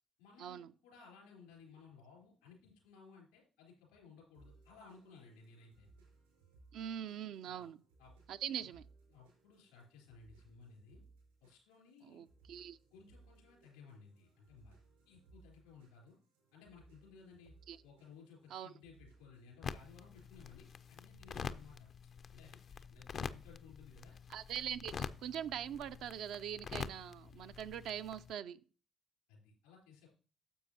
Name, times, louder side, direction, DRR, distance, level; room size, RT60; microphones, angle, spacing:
voice 1, 0.2-5.9 7.5-7.7 8.0-8.1 8.4-8.5 9.1-11.0 11.4-12.2 12.9-14.8 15.1-16.2 16.5-17.5 17.8-21.9 22.3-24.2 29.3-30.1, left 5 dB, 85° left, 3.6 m, -59 dB
sound 1, 4.3-21.8, right 3 dB, 90° right, 4.5 m, -65 dB
voice 2, 6.7-7.8 8.3-8.8 12.0-12.8 17.7-17.8 18.5-18.7 24.3-28.6, right 9 dB, 65° right, 0.3 m, -42 dB
sound 2, 19.6-28.3, left 6 dB, 55° left, 0.4 m, -46 dB
10.0 x 7.2 x 2.8 m
hypercardioid pair, 45°, 0 cm